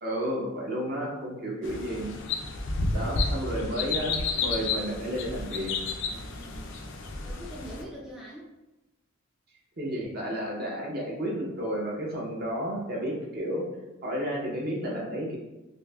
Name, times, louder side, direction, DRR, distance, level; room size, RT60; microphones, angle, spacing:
voice 1, 0.0-2.1 2.9-5.7 6.1-6.3 9.8-13.6 14.0-15.4, equal, 45° right, -3 dB, 0.8 m, -32 dB
sound 1, 1.6-7.8, left 3 dB, 60° left, 0.4 m, -31 dB
voice 2, 2.7-3.8 6.2-6.9 7.2-8.5, equal, 5° right, -6 dB, 0.4 m, -45 dB
5.3 x 2.1 x 2.3 m, 1.0 s
head